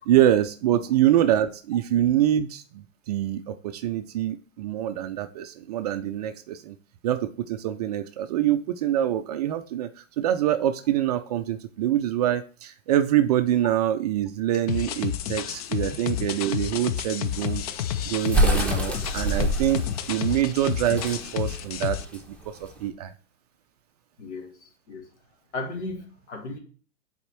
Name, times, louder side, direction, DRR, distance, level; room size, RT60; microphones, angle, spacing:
voice 1, 0.1-6.8 7.0-17.6 18.1-23.1, right 12 dB, 35° right, 10 dB, 0.4 m, -25 dB
sound 1, 14.7-22.0, left 10 dB, 30° left, 0.5 m, -30 dB
sound 2, 17.3-22.9, right 1 dB, 5° left, 1.1 m, -27 dB
voice 2, 24.2-25.1 25.5-26.6, left 3 dB, 65° left, 3 dB, 2.2 m, -36 dB
7.0 x 4.2 x 4.4 m, 0.41 s
figure-of-eight pair, 110°, 37 cm